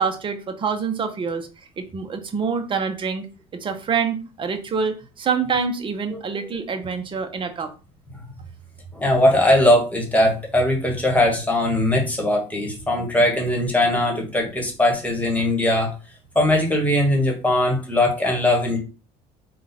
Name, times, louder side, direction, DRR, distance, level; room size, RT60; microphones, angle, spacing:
voice 1, 0.0-1.5 1.8-3.2 3.5-7.7, right 6 dB, 35° right, 6 dB, 0.9 m, -26 dB
voice 2, 8.9-15.9 16.3-18.8, left 1 dB, 10° left, 1 dB, 1.4 m, -20 dB
3.8 x 2.4 x 4.2 m, 0.33 s
supercardioid pair, 100°, 15 cm